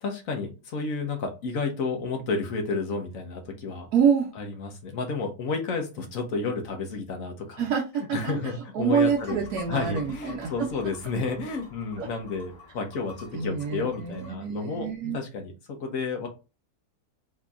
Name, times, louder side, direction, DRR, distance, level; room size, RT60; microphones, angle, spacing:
voice 1, 0.0-3.9 4.4-7.7 8.0-9.4 9.7-14.9 15.1-16.3, left 4 dB, 60° left, 3 dB, 1.3 m, -31 dB
voice 2, 3.9-4.3 7.6-8.4 8.7-10.5 12.0-12.1 13.3-15.2, right 7 dB, 75° right, -1 dB, 1.3 m, -26 dB
sound 1, 8.9-14.3, left 3 dB, 30° left, 1.3 m, -48 dB
4.3 x 2.8 x 2.4 m, 0.30 s
omnidirectional pair, 1.6 m